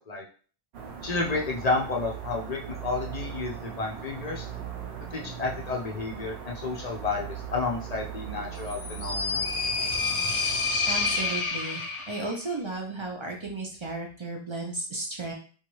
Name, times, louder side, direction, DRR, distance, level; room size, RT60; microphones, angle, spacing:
sound 1, 0.7-11.4, right 8 dB, 75° right, 0.8 m, -39 dB
voice 1, 1.0-4.5 5.1-9.4, left 3 dB, 45° left, 0 dB, 0.6 m, -31 dB
sound 2, 8.6-12.4, left 4 dB, 80° left, 0.9 m, -28 dB
voice 2, 10.9-15.3, right 2 dB, 40° right, 0 dB, 0.4 m, -34 dB
3.1 x 2.4 x 3.0 m, 0.40 s
omnidirectional pair, 1.1 m